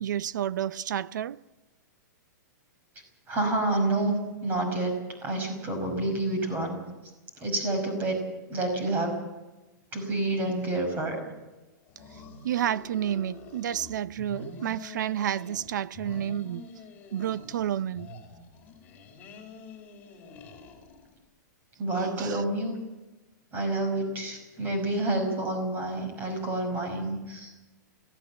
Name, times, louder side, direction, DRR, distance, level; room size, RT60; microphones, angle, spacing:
voice 1, 0.0-1.4 12.4-16.7 17.1-18.1 22.0-22.4, right 10 dB, 70° right, 0.7 m, -30 dB
voice 2, 3.3-4.1 4.4-4.9 5.2-6.8 7.4-8.2 8.5-9.1 9.9-11.3 21.8-22.8 23.5-27.5, right 2 dB, 15° right, 5.5 m, -28 dB
sound 1, 11.9-13.9 14.2-15.7 15.9-17.7 17.9-21.1, left 3 dB, 20° left, 4.3 m, -46 dB
23.0 x 17.0 x 7.4 m
supercardioid pair, 170°, 10 cm